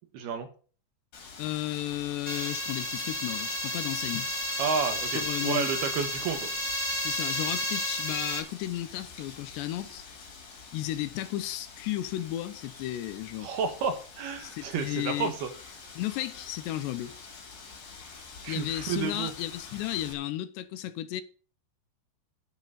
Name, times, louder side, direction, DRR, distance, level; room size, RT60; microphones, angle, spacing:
voice 1, 0.1-0.5 4.6-6.5 13.4-15.5 18.4-19.3, right 6 dB, 70° right, 3.4 m, -31 dB
Wind, 1.1-20.1, left 5 dB, 55° left, 4.8 m, -47 dB
voice 2, 1.4-4.3 5.2-5.7 7.0-10.0 10.7-13.5 14.4-15.3 16.0-17.1 18.5-21.2, left 14 dB, 85° left, 3.0 m, -34 dB
sound 1, 2.3-8.4, left 1 dB, 5° left, 2.8 m, -32 dB
9.6 x 6.3 x 8.4 m
omnidirectional pair, 4.9 m